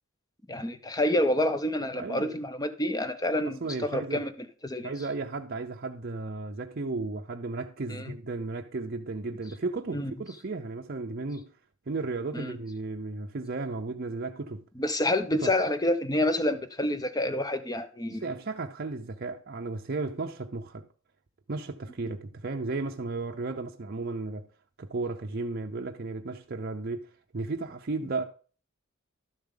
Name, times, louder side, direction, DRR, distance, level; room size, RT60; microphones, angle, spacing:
voice 1, 0.5-4.9 7.9-8.1 9.9-10.1 12.3-12.6 14.8-18.3, left 1 dB, 20° left, 0.8 m, -28 dB
voice 2, 1.9-2.4 3.6-4.2 4.8-11.5 11.9-14.6 15.3-15.5 18.1-20.8 21.5-24.5 24.8-28.2, right 3 dB, 50° right, 0.6 m, -34 dB
12.0 x 7.0 x 3.8 m
head